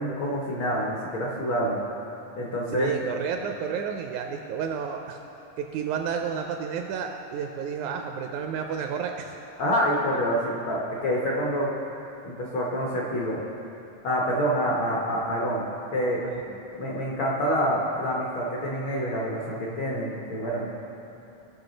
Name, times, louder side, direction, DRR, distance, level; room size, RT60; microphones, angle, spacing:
voice 1, 0.0-1.8 2.4-2.9 3.4-3.5 9.6-11.7 12.2-13.4 14.0-16.2 16.8-20.7, equal, 80° left, -4 dB, 1.1 m, -27 dB
voice 2, 2.8-5.2 5.6-9.4 16.2-16.6, right 7 dB, 80° right, 4 dB, 1.7 m, -31 dB
17.0 x 6.0 x 3.9 m, 2.9 s
omnidirectional pair, 3.7 m